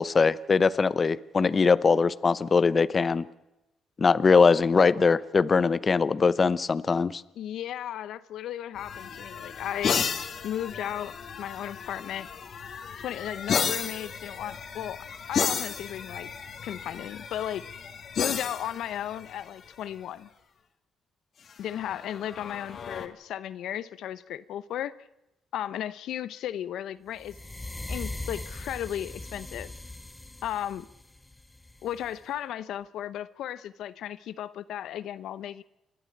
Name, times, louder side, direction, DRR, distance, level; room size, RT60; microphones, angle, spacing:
voice 1, 0.0-3.3 4.0-7.2, left 5 dB, 35° left, 16 dB, 0.7 m, -22 dB
voice 2, 7.4-10.0 10.4-12.3 13.0-16.3 16.6-17.6 18.2-20.3 21.6-24.9 25.5-27.4 27.9-29.7 30.4-30.9 31.8-35.6, left 11 dB, 80° left, 15 dB, 0.7 m, -35 dB
sound 1, 8.8-19.9 21.5-23.1, left 6 dB, 55° left, 2.2 m, -33 dB
sound 2, 27.2-32.2, left 2 dB, 15° left, 1.1 m, -40 dB
29.0 x 12.0 x 8.6 m, 0.93 s
cardioid pair, 90°, 0 cm